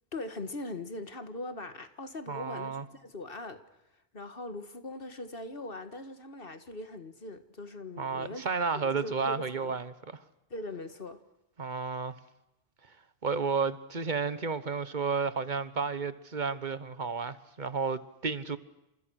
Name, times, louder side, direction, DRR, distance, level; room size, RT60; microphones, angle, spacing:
voice 1, 0.1-3.6 4.1-8.5 8.7-9.8 10.5-11.2, left 2 dB, 60° left, 2.0 m, -41 dB
voice 2, 2.3-2.8 8.0-9.9 11.6-12.2 13.2-18.6, right 5 dB, 50° right, 1.3 m, -32 dB
29.5 x 27.5 x 6.5 m
omnidirectional pair, 1.0 m